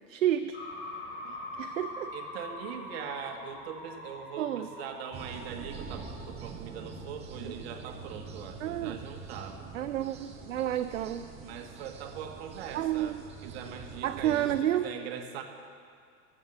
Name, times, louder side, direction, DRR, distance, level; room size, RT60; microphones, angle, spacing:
voice 1, 0.1-0.6 1.6-2.1 4.4-4.7 7.4-7.5 8.6-9.0 9.7-11.3 12.7-13.2 14.0-14.9, right 11 dB, 55° right, 9 dB, 0.5 m, -30 dB
sound 1, 0.5-7.0, left 2 dB, 30° left, 3.4 m, -43 dB
voice 2, 2.1-9.6 11.4-13.2 13.4-15.4, right 8 dB, 40° right, 5 dB, 1.3 m, -41 dB
sound 2, 5.1-14.6, right 4 dB, 15° right, 0.6 m, -45 dB
14.0 x 7.3 x 6.8 m, 2.2 s
figure-of-eight pair, 100°, 47 cm